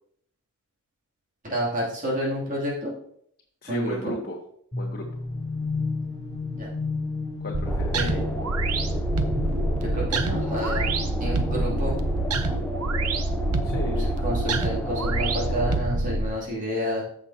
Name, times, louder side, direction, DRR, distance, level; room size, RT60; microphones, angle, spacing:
voice 1, 1.4-2.9 3.7-4.1 6.5-6.7 7.9-8.3 9.8-10.9 11.2-11.9 14.2-17.0, equal, 35° right, -5 dB, 2.8 m, -29 dB
voice 2, 3.6-4.4 4.8-5.1 7.4-8.1 13.6-14.1, equal, 45° left, 0 dB, 1.1 m, -34 dB
sound 1, 4.7-12.5, left 3 dB, 25° left, 3.4 m, -33 dB
sound 2, 7.5-16.3, right 2 dB, 85° right, 0.9 m, -26 dB
sound 3, 7.6-15.8, equal, 5° left, 0.6 m, -34 dB
15.0 x 5.9 x 2.8 m, 0.67 s
head